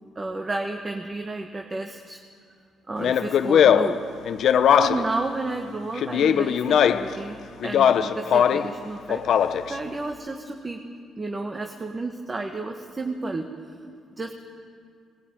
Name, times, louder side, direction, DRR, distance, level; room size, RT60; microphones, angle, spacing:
voice 1, 0.1-2.2 2.9-4.0 4.7-10.8 11.2-13.5 14.2-14.3, right 2 dB, 25° right, 3 dB, 1.3 m, -32 dB
Speech, 3.0-5.2 6.0-7.2 7.6-8.7 9.1-9.7, left 8 dB, 70° left, 0.7 m, -20 dB
19.0 x 16.0 x 9.0 m, 2.2 s
cardioid pair, 90°, 0 cm